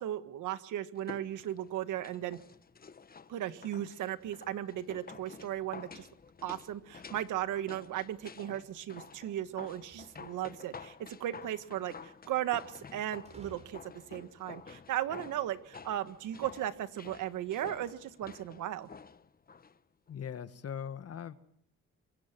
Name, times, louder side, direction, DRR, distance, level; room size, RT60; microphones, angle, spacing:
voice 1, 0.0-2.4 3.3-6.1 6.4-18.9, right 12 dB, 80° right, 11 dB, 1.7 m, -36 dB
sound 1, 0.9-19.8 20.1-20.2, left 5 dB, 30° left, 1.1 m, -51 dB
sound 2, 9.8-10.8 13.3-14.3, right 2 dB, 20° right, 7.7 m, -57 dB
voice 2, 20.1-21.4, left 8 dB, 55° left, 10 dB, 1.8 m, -40 dB
26.0 x 22.5 x 6.0 m, 0.67 s
cardioid pair, 90°, 30 cm